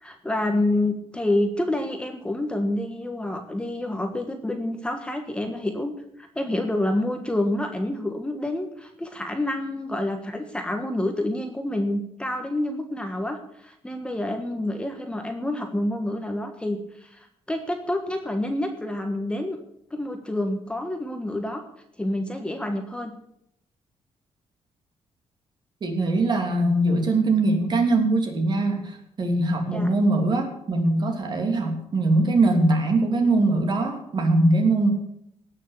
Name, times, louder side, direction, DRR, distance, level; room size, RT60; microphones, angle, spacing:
voice 1, 0.0-5.9 6.2-19.6 19.9-21.6 22.0-23.1 29.7-29.9, left 1 dB, 10° left, 5 dB, 1.5 m, -28 dB
voice 2, 25.8-34.9, right 2 dB, 40° right, 4 dB, 3.1 m, -22 dB
17.5 x 6.6 x 8.4 m, 0.74 s
cardioid pair, 130°, 11 cm